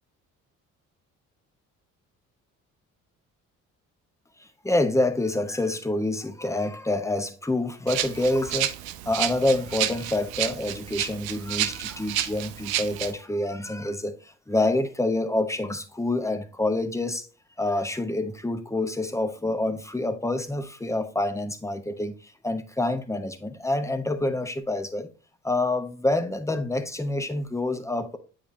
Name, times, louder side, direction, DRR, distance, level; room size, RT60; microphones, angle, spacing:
voice 1, 4.4-8.7 9.0-17.3 17.6-25.1 25.4-28.2, left 2 dB, 5° left, 1.0 m, -27 dB
Rattle (instrument), 7.9-13.1, right 13 dB, 65° right, 0.7 m, -30 dB
8.3 x 4.1 x 3.2 m
hypercardioid pair, 50°, 40 cm